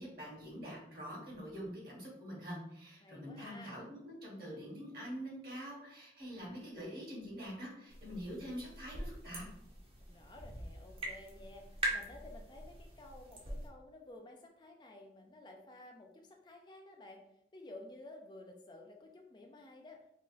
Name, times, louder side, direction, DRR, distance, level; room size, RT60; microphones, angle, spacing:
voice 1, 0.0-9.4, equal, 55° right, -4 dB, 1.2 m, -45 dB
voice 2, 3.0-3.8 10.0-17.2 17.5-20.0, left 2 dB, 25° left, 2 dB, 0.4 m, -53 dB
sound 1, 7.9-13.7, right 1 dB, 30° right, 0.6 m, -43 dB
3.8 x 2.4 x 2.3 m, 0.78 s
head